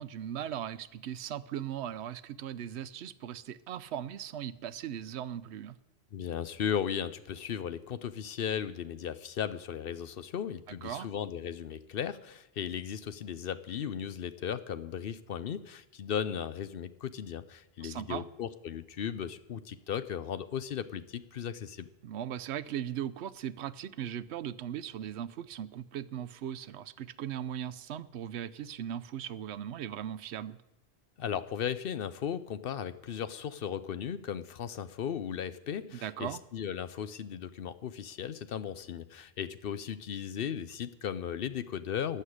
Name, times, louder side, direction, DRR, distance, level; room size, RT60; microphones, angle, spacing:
voice 1, 0.0-5.8 10.7-11.1 17.8-18.2 22.0-30.6 35.9-36.4, right 10 dB, 85° right, 15 dB, 0.9 m, -38 dB
voice 2, 6.1-21.9 31.2-42.2, left 8 dB, 65° left, 13 dB, 0.8 m, -36 dB
14.0 x 6.7 x 9.8 m, 0.99 s
omnidirectional pair, 1.1 m